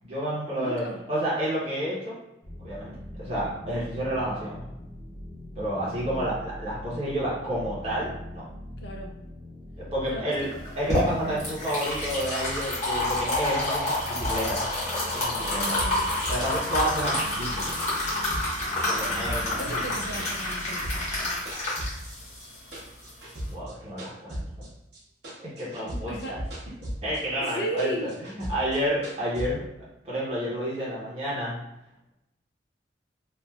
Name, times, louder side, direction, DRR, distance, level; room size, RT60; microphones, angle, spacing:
voice 1, 0.0-2.1 2.6-4.6 5.6-8.4 9.8-10.5 10.7-14.6 15.1-15.8 16.3-17.6 18.8-19.7 23.5-24.7 25.4-26.4 27.0-28.1 28.5-29.6 30.0-31.6, equal, 35° right, -7 dB, 0.8 m, -30 dB
voice 2, 0.6-1.0 5.8-6.2 8.8-9.1 10.1-10.6 11.2-11.4 15.5-16.0 19.1-21.5 25.9-26.4 27.4-28.2, right 1 dB, 65° left, 1 dB, 0.6 m, -36 dB
sound 1, 2.4-21.2, left 1 dB, 10° left, 0.5 m, -42 dB
sound 2, 10.5-23.5, left 1 dB, 40° left, 1.1 m, -29 dB
sound 3, 13.3-17.4 17.7-19.6 19.9-21.2 21.5-25.0 25.2-27.2 27.5-29.5, equal, 60° right, 0.9 m, -37 dB
3.2 x 2.4 x 2.3 m, 0.88 s
head